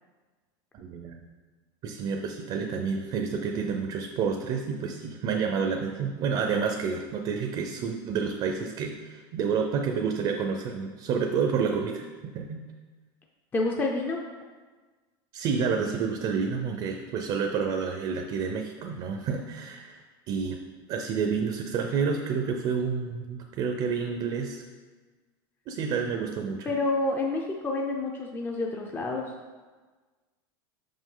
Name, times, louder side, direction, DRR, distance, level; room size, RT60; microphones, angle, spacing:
voice 1, 0.7-1.2 1.8-12.6 15.3-20.0 20.3-20.6 20.9-24.6 25.7-26.7, right 6 dB, 45° right, 3 dB, 0.6 m, -29 dB
voice 2, 13.5-14.2 26.6-29.3, left 2 dB, 15° left, 0 dB, 0.5 m, -28 dB
5.9 x 5.2 x 3.8 m, 1.3 s
supercardioid pair, 140°, 12 cm